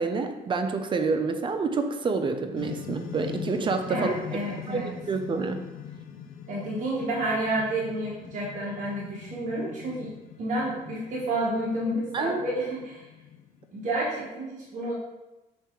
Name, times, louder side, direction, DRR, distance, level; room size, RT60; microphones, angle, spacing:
voice 1, 0.0-4.2 4.7-4.8 5.1-5.6 12.1-12.4, right 4 dB, 30° right, 6 dB, 0.6 m, -28 dB
sound 1, 2.5-14.0, left 9 dB, 55° left, 0.7 m, -42 dB
voice 2, 3.9-4.9 6.5-10.1 10.4-13.1 13.7-14.9, right 1 dB, 45° right, -5 dB, 1.2 m, -30 dB
6.5 x 3.3 x 4.5 m, 1.1 s
cardioid pair, 110°, 17 cm